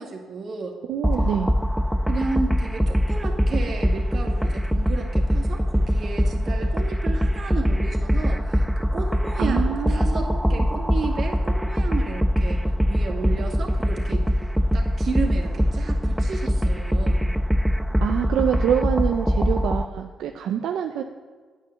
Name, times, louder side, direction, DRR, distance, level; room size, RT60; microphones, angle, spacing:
voice 1, 0.0-0.8 2.1-14.4 14.7-17.3, right 4 dB, 55° right, 1 dB, 2.2 m, -33 dB
voice 2, 0.9-1.6 9.4-10.7 18.0-21.0, right 9 dB, 80° right, 5 dB, 0.6 m, -26 dB
sound 1, 1.0-19.9, equal, ahead, 0.5 m, -23 dB
9.6 x 8.6 x 6.9 m, 1.5 s
cardioid pair, 90°, 0 cm